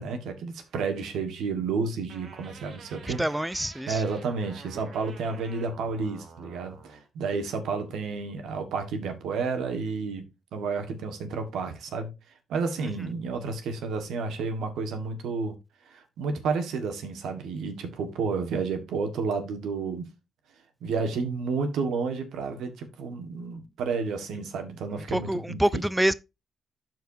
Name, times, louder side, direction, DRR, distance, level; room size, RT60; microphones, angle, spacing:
voice 1, 0.0-3.2 3.9-10.2 10.5-12.1 12.5-15.5 15.9-20.1 20.8-25.8, right 4 dB, 80° right, 1.5 m, -31 dB
sound 1, 2.1-7.0, right 4 dB, 60° right, 1.8 m, -49 dB
voice 2, 3.1-4.0 25.1-26.1, right 1 dB, 5° right, 0.4 m, -26 dB
12.5 x 4.6 x 2.7 m
cardioid pair, 65°, 0 cm